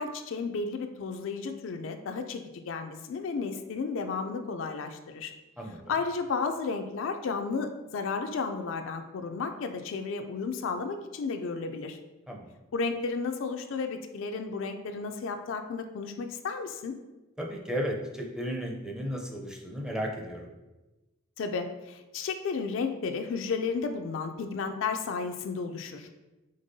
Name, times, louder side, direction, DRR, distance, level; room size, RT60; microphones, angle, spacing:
voice 1, 0.0-5.3 5.9-12.0 12.7-17.0 21.4-26.1, left 4 dB, 65° left, 7 dB, 0.3 m, -33 dB
voice 2, 12.3-12.6 17.4-20.5, equal, 5° right, 0 dB, 0.5 m, -34 dB
5.2 x 3.5 x 2.7 m, 1.1 s
head